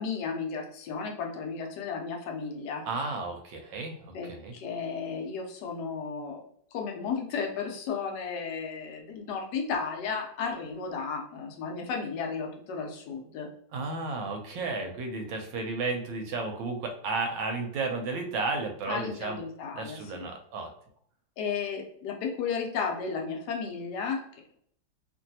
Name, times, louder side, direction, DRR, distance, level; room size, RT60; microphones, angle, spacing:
voice 1, 0.0-2.9 4.1-6.4 6.7-13.5 18.9-20.3 21.4-24.4, left 5 dB, 70° left, 2 dB, 1.1 m, -34 dB
voice 2, 2.9-4.5 13.7-19.4 19.8-20.7, right 3 dB, 80° right, 4 dB, 1.2 m, -33 dB
3.1 x 2.6 x 2.6 m, 0.66 s
omnidirectional pair, 2.1 m